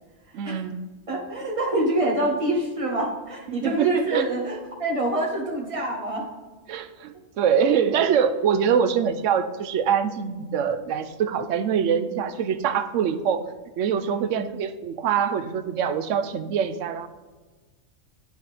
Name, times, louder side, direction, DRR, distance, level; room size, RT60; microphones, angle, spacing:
voice 1, 0.3-0.7 3.6-4.3 6.7-13.5 13.8-17.1, right 7 dB, 75° right, 11 dB, 0.9 m, -24 dB
voice 2, 1.1-6.3 14.0-14.2, right 2 dB, 25° right, -1 dB, 1.4 m, -26 dB
11.5 x 4.1 x 3.3 m, 1.3 s
omnidirectional pair, 1.3 m